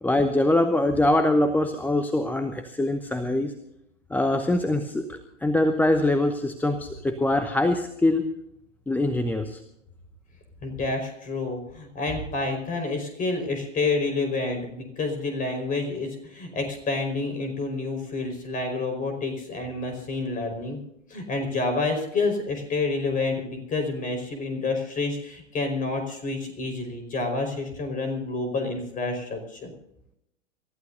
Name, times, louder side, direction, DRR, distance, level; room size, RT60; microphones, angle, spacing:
voice 1, 0.0-3.5 4.1-8.3 8.9-9.6, left 1 dB, 5° left, 8 dB, 0.8 m, -23 dB
voice 2, 10.6-20.8 21.1-29.7, left 3 dB, 20° left, 5 dB, 5.0 m, -29 dB
28.0 x 14.5 x 2.7 m, 0.81 s
figure-of-eight pair, 105°, 38 cm